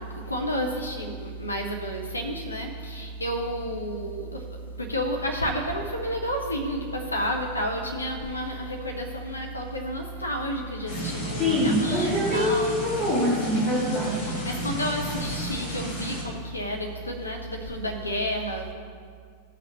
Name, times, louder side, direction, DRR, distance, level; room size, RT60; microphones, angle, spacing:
voice 1, 0.0-12.8 13.9-18.7, equal, 80° left, 2 dB, 0.8 m, -31 dB
sound 1, 10.9-16.2, equal, 45° left, 2.4 m, -33 dB
voice 2, 11.4-14.3, left 1 dB, 20° left, -8 dB, 2.6 m, -24 dB
16.0 x 6.0 x 3.1 m, 2.1 s
figure-of-eight pair, 90°, 0 cm